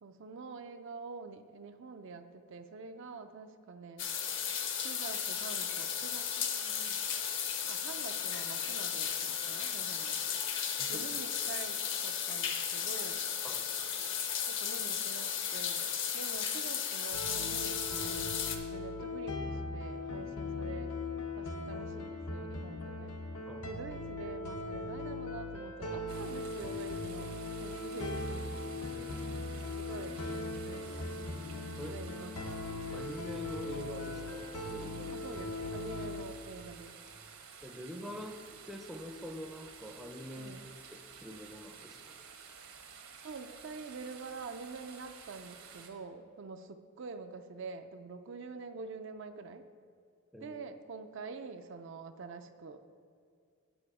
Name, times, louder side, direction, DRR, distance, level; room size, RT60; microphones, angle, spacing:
voice 1, 0.0-4.1 4.7-7.0 7.7-10.2 10.9-13.3 14.5-18.3 18.7-21.0 21.3-23.1 23.7-27.3 27.6-28.6 29.8-30.2 30.6-31.4 31.9-32.4 35.1-37.0 40.4-40.7 43.2-49.7 50.4-53.0, right 4 dB, 55° right, 8 dB, 0.4 m, -46 dB
sound 1, 4.0-18.6, left 8 dB, 55° left, 0.7 m, -35 dB
sound 2, 17.1-36.2, left 2 dB, 85° left, 0.9 m, -39 dB
sound 3, 26.1-45.9, right 6 dB, 75° right, 1.1 m, -52 dB
voice 2, 28.9-29.4 31.8-32.0 32.9-35.2 37.6-38.4 38.7-40.5 40.9-42.0 50.3-50.6, left 1 dB, ahead, 3 dB, 0.5 m, -45 dB
8.8 x 6.9 x 4.8 m, 2.3 s
head